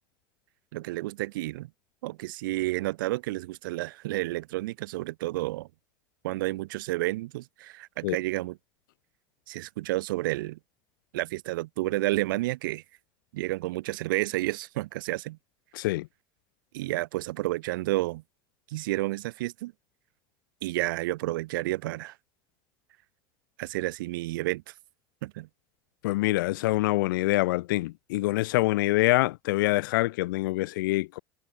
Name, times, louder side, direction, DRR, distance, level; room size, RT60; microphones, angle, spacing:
voice 1, 0.7-1.7 2.0-5.7 6.2-8.6 9.5-10.6 11.1-12.8 13.3-15.4 16.7-18.2 18.7-19.7 20.6-22.1 23.6-24.6 25.2-25.5, right 18 dB, 90° right, 1.2 m, -30 dB
voice 2, 15.7-16.1 26.0-31.2, left 19 dB, 90° left, 0.8 m, -25 dB
supercardioid pair, 105°, 11 cm